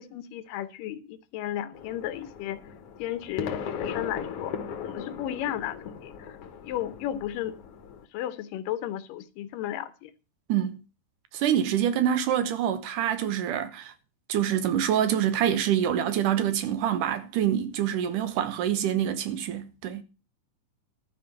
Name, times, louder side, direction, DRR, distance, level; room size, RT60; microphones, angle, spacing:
voice 1, 0.0-2.6 3.0-6.4 6.6-7.5 8.1-10.1, left 12 dB, 80° left, 2.5 m, -34 dB
sound 1, 1.7-8.1, left 7 dB, 60° left, 1.7 m, -38 dB
voice 2, 11.3-13.9 14.3-20.0, right 10 dB, 75° right, 2.5 m, -26 dB
12.5 x 5.3 x 8.1 m
omnidirectional pair, 3.9 m